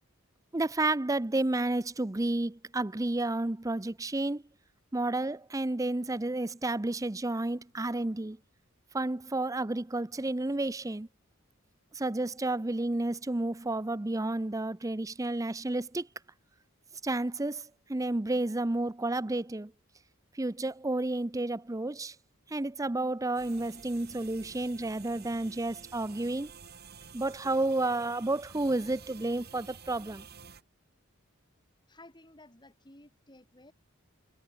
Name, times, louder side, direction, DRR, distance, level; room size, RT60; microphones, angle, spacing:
voice 1, 0.5-4.4 4.9-8.4 8.9-11.1 11.9-16.1 17.0-19.7 20.3-22.1 22.5-26.5 27.1-30.3, right 2 dB, 15° right, 0.6 m, -31 dB
sound 1, 23.3-30.6, right 5 dB, 50° right, 4.3 m, -51 dB
voice 2, 31.9-33.7, left 2 dB, 20° left, 5.5 m, -55 dB
head